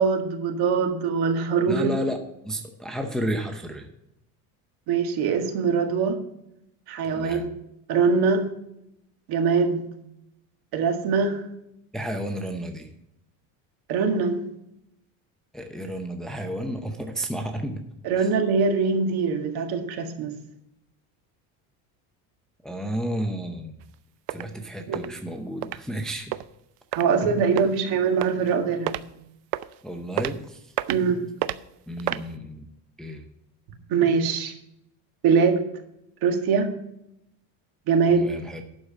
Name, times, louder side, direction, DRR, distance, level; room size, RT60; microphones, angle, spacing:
voice 1, 0.0-1.9 4.9-6.2 6.9-7.5 7.9-8.5 9.3-9.8 10.7-11.4 13.9-14.4 18.0-20.3 24.9-25.0 26.9-29.0 30.9-31.2 33.9-34.5 35.2-35.6 36.2-36.7 37.9-38.3, right 5 dB, 60° right, 5 dB, 1.8 m, -22 dB
voice 2, 1.7-2.2 2.4-3.9 7.0-7.5 11.9-12.9 15.5-17.9 18.2-18.3 22.6-23.8 24.3-26.3 29.8-30.7 31.9-32.7 33.0-33.2 38.1-38.6, equal, ahead, 4 dB, 0.7 m, -32 dB
sound 1, 23.8-23.9 24.3-24.4 24.9-25.1 25.6-25.8 26.3-26.4 26.9-27.0 27.6-27.8 28.2-28.5 28.9-29.0 29.5-29.7 30.2-30.3 30.8-31.0 31.4-31.6 32.0-32.2, right 16 dB, 80° right, 0.7 m, -28 dB
11.5 x 4.9 x 7.4 m, 0.80 s
cardioid pair, 145°, 42 cm